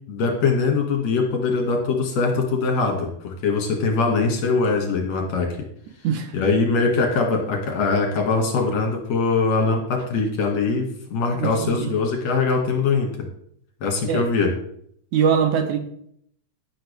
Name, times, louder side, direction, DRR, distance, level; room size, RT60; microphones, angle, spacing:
voice 1, 0.1-5.6 6.3-13.1 13.8-14.5, left 4 dB, 60° left, 2 dB, 3.2 m, -22 dB
voice 2, 11.4-11.9 14.1-14.3 15.1-15.8, right 7 dB, 70° right, 7 dB, 2.3 m, -22 dB
11.5 x 10.5 x 3.5 m, 0.67 s
omnidirectional pair, 3.7 m